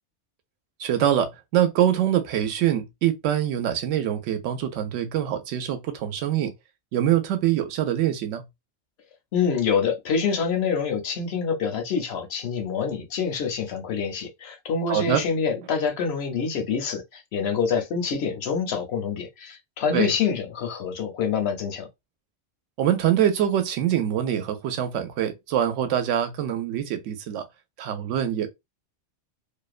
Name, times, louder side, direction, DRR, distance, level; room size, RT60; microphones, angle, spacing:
voice 1, 0.8-6.5 6.9-8.4 14.9-15.2 19.9-20.1 22.8-27.5 27.8-28.5, right 10 dB, 80° right, 0.9 m, -24 dB
voice 2, 9.3-21.9, left 6 dB, 65° left, 0.8 m, -26 dB
2.5 x 2.1 x 2.3 m
omnidirectional pair, 1.3 m